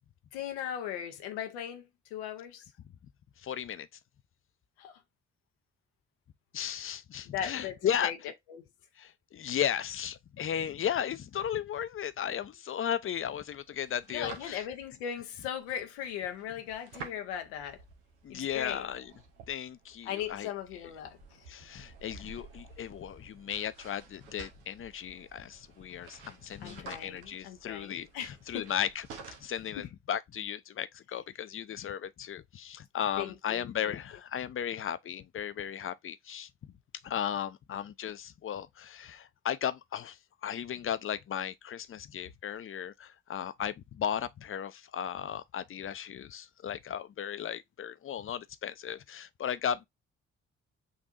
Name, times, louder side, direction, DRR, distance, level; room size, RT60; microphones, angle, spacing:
voice 1, 0.3-2.7 4.8-5.0 7.3-7.8 8.0-8.2 8.5-8.6 14.1-17.8 18.3-18.9 20.0-21.5 26.6-28.7 29.8-29.9 33.2-34.0, left 9 dB, 85° left, 0.6 m, -38 dB
voice 2, 3.4-3.9 6.5-8.1 9.0-14.7 18.2-19.1 19.5-20.5 21.5-36.5 37.0-49.9, left 9 dB, 40° left, 0.5 m, -35 dB
sound 1, 13.2-29.7, right 4 dB, 90° right, 0.7 m, -52 dB
6.3 x 2.6 x 2.5 m
hypercardioid pair, 40°, 33 cm